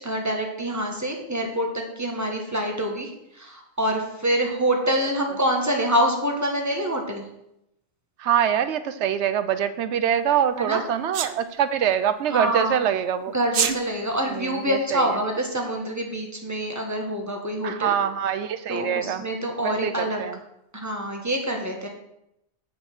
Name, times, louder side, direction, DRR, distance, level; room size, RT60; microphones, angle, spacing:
voice 1, 0.0-7.2 10.6-10.8 12.3-12.8 13.3-17.9 18.7-20.2 20.7-21.9, equal, 15° right, 2 dB, 1.4 m, -26 dB
voice 2, 8.2-13.3 14.3-15.2 17.6-19.2 19.6-20.4, right 9 dB, 85° right, 12 dB, 1.0 m, -24 dB
Sneeze, 11.1-11.4 13.4-13.8, right 8 dB, 60° right, 0.7 m, -23 dB
9.0 x 5.3 x 6.1 m, 0.83 s
omnidirectional pair, 1.2 m